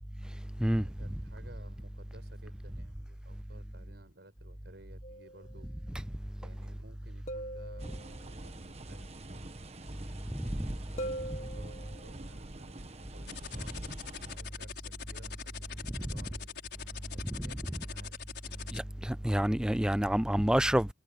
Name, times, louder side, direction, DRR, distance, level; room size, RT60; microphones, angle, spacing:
voice 1, 0.8-5.7 6.4-9.5 10.8-16.7 17.1-18.2, right 1 dB, 65° right, 6.8 m, -57 dB
sound 1, 5.0-5.7 7.3-8.4 11.0-12.3, right 1 dB, 40° left, 1.7 m, -42 dB
sound 2, 7.8-14.4, right 1 dB, 35° right, 1.3 m, -45 dB
voice 2, 10.3-10.7 16.1-16.2 17.3-17.5 18.7-20.9, right 1 dB, 5° right, 0.4 m, -28 dB
sound 3, 13.3-18.8, left 8 dB, 65° left, 6.2 m, -43 dB
head